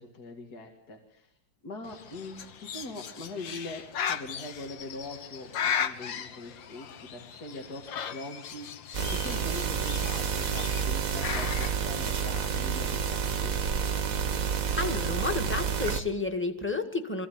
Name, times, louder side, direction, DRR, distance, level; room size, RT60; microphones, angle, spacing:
voice 1, 0.0-1.3 1.6-8.8 9.1-13.6, left 2 dB, 55° left, 3 dB, 2.6 m, -42 dB
Bird, 1.8-11.7, left 8 dB, 85° left, 1.9 m, -37 dB
sound 1, 8.9-16.0, right 7 dB, 50° right, 1.5 m, -29 dB
voice 2, 14.8-17.3, left 3 dB, 5° left, 6 dB, 1.8 m, -31 dB
25.5 x 15.5 x 9.5 m, 0.73 s
omnidirectional pair, 2.0 m